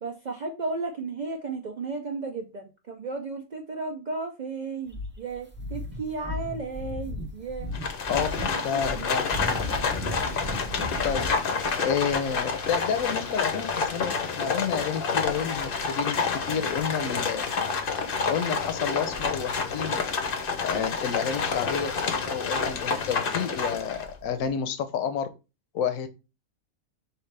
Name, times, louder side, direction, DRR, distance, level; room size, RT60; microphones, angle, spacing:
voice 1, 0.0-7.7 8.1-8.2 8.4-9.3, right 3 dB, 70° right, 4 dB, 0.4 m, -34 dB
sound 1, 4.9-16.0 16.2-16.4 16.7-24.5, left 1 dB, 10° right, 0.5 m, -38 dB
Livestock farm animals working animals, 7.7-24.1, left 5 dB, 50° left, 0.8 m, -29 dB
voice 2, 8.1-9.5 11.0-11.3 11.8-17.4 18.3-20.0 20.6-21.9 22.3-25.3 25.7-26.1, left 7 dB, 80° left, 10 dB, 1.0 m, -30 dB
4.8 x 3.1 x 3.2 m, 0.28 s
omnidirectional pair, 1.4 m